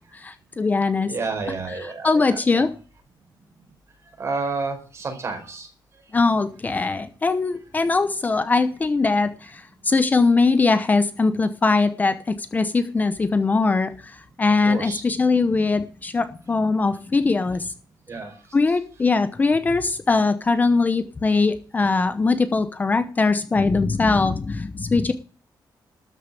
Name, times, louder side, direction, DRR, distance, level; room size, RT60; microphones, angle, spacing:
voice 1, 0.1-1.1 1.8-2.7 6.1-17.7 18.5-25.1, left 3 dB, 20° left, 10 dB, 0.9 m, -21 dB
voice 2, 1.0-2.7 4.2-5.7 14.6-15.0 18.1-18.3, right 4 dB, 35° right, 4 dB, 4.8 m, -30 dB
13.0 x 7.1 x 9.0 m, 0.37 s
wide cardioid pair, 170°, 8 cm